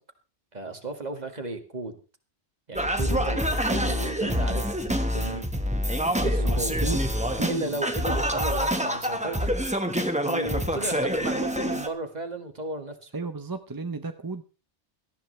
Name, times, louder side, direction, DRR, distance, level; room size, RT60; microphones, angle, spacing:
voice 1, 0.5-2.0 2.7-3.4 3.7-5.5 6.2-6.8 7.5-9.5 10.3-13.1, right 2 dB, 40° right, 6 dB, 2.0 m, -34 dB
Singing, 2.8-11.9, equal, 5° right, 1.3 m, -26 dB
voice 2, 6.2-7.1 7.3-7.8 13.1-14.4, right 4 dB, 20° right, 8 dB, 0.7 m, -34 dB
18.0 x 13.5 x 3.3 m, 0.32 s
omnidirectional pair, 1.2 m